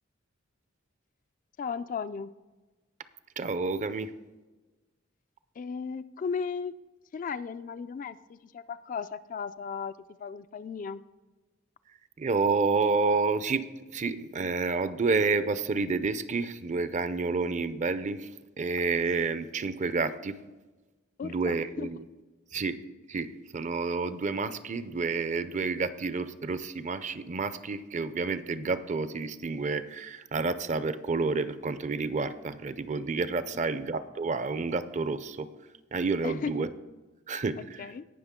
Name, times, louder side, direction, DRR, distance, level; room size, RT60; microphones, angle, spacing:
voice 1, 1.6-2.3 5.6-6.7 7.1-11.0 21.2-21.9 36.2-36.6 37.8-38.1, left 5 dB, 40° left, 12 dB, 0.3 m, -36 dB
voice 2, 3.4-4.1 12.2-18.3 18.6-20.4 21.2-22.0 22.5-22.8 23.1-35.5 35.9-36.7 37.3-37.9, right 4 dB, 35° right, 13 dB, 0.5 m, -29 dB
18.0 x 6.1 x 3.6 m, 1.2 s
head